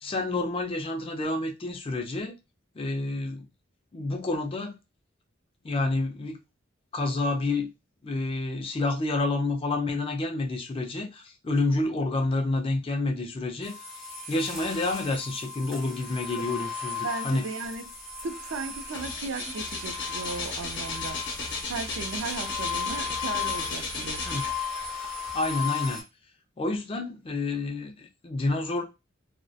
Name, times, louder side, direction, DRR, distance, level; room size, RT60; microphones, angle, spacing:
voice 1, 0.0-2.3 2.8-3.5 3.9-4.7 5.6-6.4 6.9-7.7 8.0-13.7 14.3-17.5 24.3-24.4 24.7-24.9 25.3-26.0 26.6-28.8, left 2 dB, 30° left, 0.4 m, -29 dB
sound 1, 13.6-26.0, left 6 dB, ahead, 1.0 m, -36 dB
voice 2, 17.0-17.8 18.2-21.2 21.7-24.2, right 4 dB, 70° right, 0.4 m, -36 dB
sound 2, 18.1-18.3 18.6-24.9 25.4-25.5, left 3 dB, 60° left, 0.7 m, -35 dB
2.6 x 2.1 x 2.3 m
head